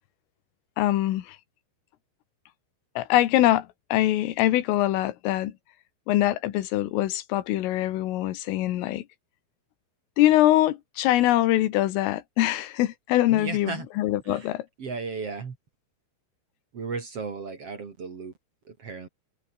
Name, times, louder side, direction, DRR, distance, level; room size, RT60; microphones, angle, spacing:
voice 1, 0.8-1.4 3.0-5.5 6.1-9.1 10.2-14.6, left 14 dB, 80° left, 4.1 m, -23 dB
voice 2, 13.3-13.9 14.2-14.5 14.8-15.6 16.7-18.3 18.6-19.1, right 4 dB, 40° right, 2.5 m, -35 dB
omnidirectional pair, 5.8 m